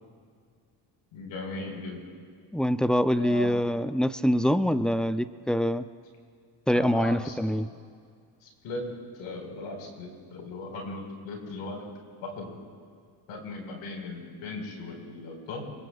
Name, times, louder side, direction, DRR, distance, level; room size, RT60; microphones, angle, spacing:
voice 1, 1.1-2.0 3.1-3.5 6.7-7.3 8.4-8.9 9.1-11.9 12.2-12.5 13.3-15.6, left 2 dB, 85° left, 1 dB, 4.6 m, -37 dB
voice 2, 2.5-5.9 6.7-7.7, equal, ahead, 12 dB, 0.3 m, -25 dB
25.5 x 22.0 x 2.3 m, 2.2 s
cardioid pair, 85°, 50 cm